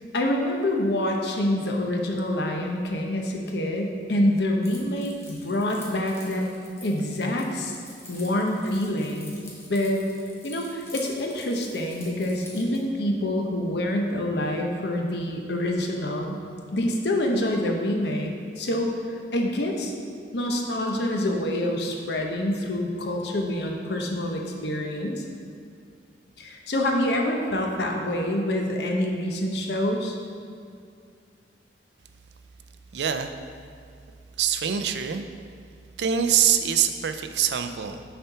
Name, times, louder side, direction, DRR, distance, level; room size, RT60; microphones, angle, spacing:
voice 1, 0.1-6.5 6.8-7.8 8.1-9.4 9.7-10.0 10.4-16.4 16.7-18.9 19.3-19.9 20.3-25.2 26.4-30.2, left 1 dB, 65° left, 1 dB, 0.9 m, -26 dB
Keys jangling, 4.6-12.8, left 2 dB, 15° left, 1.1 m, -46 dB
voice 2, 32.9-33.3 34.4-35.2 36.0-38.0, right 8 dB, 70° right, 8 dB, 0.4 m, -24 dB
6.8 x 4.4 x 5.6 m, 2.4 s
head